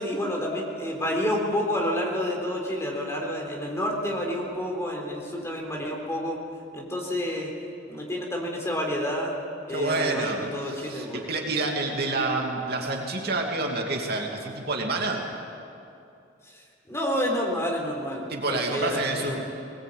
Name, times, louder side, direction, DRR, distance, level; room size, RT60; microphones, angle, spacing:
voice 1, 0.0-6.4 6.7-7.5 7.9-9.4 9.7-11.4 12.1-12.3 16.5-18.2 18.5-19.4, equal, 15° left, 0 dB, 3.8 m, -29 dB
voice 2, 9.7-15.3 18.3-19.4, right 2 dB, 55° right, 1 dB, 2.7 m, -28 dB
20.5 x 20.5 x 8.7 m, 2.6 s
head